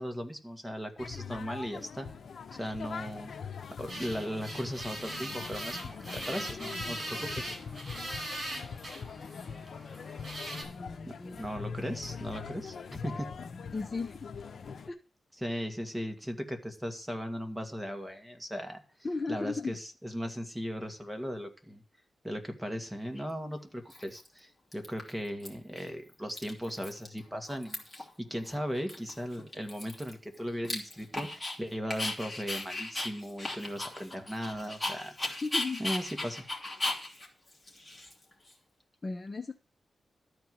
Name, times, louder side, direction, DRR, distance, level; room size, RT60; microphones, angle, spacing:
voice 1, 0.0-2.1 2.5-3.3 3.8-7.5 11.0-13.3 15.4-18.8 19.3-21.8 22.2-35.1 35.8-36.4, equal, 5° right, 4 dB, 1.8 m, -37 dB
sound 1, 1.0-14.9, left 5 dB, 70° left, 0.8 m, -42 dB
sound 2, 3.9-10.6, right 1 dB, 40° right, 5.8 m, -40 dB
voice 2, 10.7-11.4 13.7-14.2 14.9-15.0 19.0-19.8 35.4-35.8 39.0-39.5, left 3 dB, 30° left, 6 dB, 0.8 m, -35 dB
Dog, 23.2-23.3 23.9-24.4 24.7-25.5 25.8-25.9 26.1-27.2 27.4-28.1 28.5-28.6 28.9-31.6 31.9-38.5, left 2 dB, 15° left, 2.9 m, -37 dB
13.0 x 4.6 x 7.8 m, 0.36 s
wide cardioid pair, 100°, 0 cm